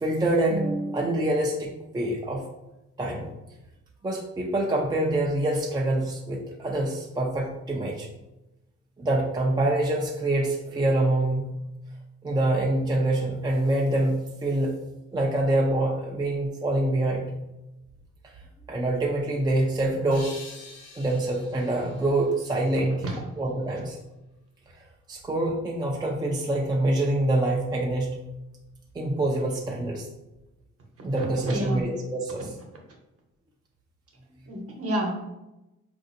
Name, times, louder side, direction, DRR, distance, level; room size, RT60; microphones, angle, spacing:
voice 1, 0.0-2.4 3.0-3.3 4.0-8.1 9.0-11.5 12.2-14.8 15.1-17.3 18.7-20.3 20.9-24.0 25.1-28.2 28.9-30.1 31.0-32.5, right 1 dB, 15° right, -1 dB, 0.5 m, -25 dB
sound 1, 20.1-23.2, left 3 dB, 55° left, 0.8 m, -47 dB
voice 2, 31.2-31.8 34.5-35.1, right 1 dB, 50° right, 0 dB, 1.0 m, -29 dB
4.0 x 2.6 x 2.7 m, 0.95 s
cardioid pair, 90°, 30 cm